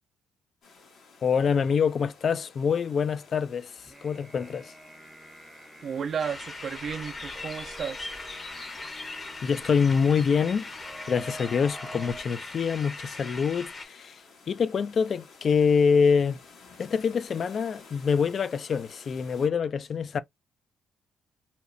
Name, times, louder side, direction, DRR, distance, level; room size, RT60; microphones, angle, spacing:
sound 1, 0.6-19.5, left 4 dB, 70° left, 1.2 m, -53 dB
voice 1, 1.2-3.7 4.0-4.7 9.4-10.7 11.1-14.2 14.5-16.4 16.8-20.2, left 6 dB, 50° left, 0.4 m, -25 dB
sound 2, 3.8-12.2, right 1 dB, 10° right, 0.6 m, -48 dB
voice 2, 5.8-8.1, right 7 dB, 55° right, 0.4 m, -33 dB
sound 3, 6.2-13.8, left 2 dB, 35° left, 0.8 m, -40 dB
2.8 x 2.0 x 2.4 m
cardioid pair, 90°, 0 cm